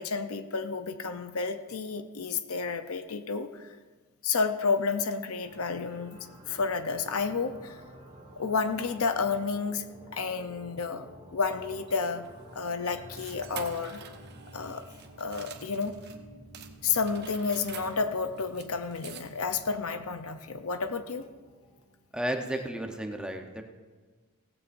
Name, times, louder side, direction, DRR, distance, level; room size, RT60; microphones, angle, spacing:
voice 1, 0.0-3.8 4.2-6.2 6.5-7.8 8.4-9.8 10.1-11.1 11.3-12.3 12.5-14.0 14.5-14.9 15.2-16.0 16.8-21.2, left 5 dB, 70° left, 9 dB, 0.7 m, -31 dB
sound 1, 5.4-21.9, right 1 dB, 30° right, 2.2 m, -51 dB
sound 2, 11.4-16.2 16.5-19.6, right 7 dB, 50° right, 1.0 m, -48 dB
voice 2, 22.1-23.6, right 1 dB, 5° right, 3 dB, 0.9 m, -33 dB
17.0 x 15.0 x 2.6 m, 1.4 s
head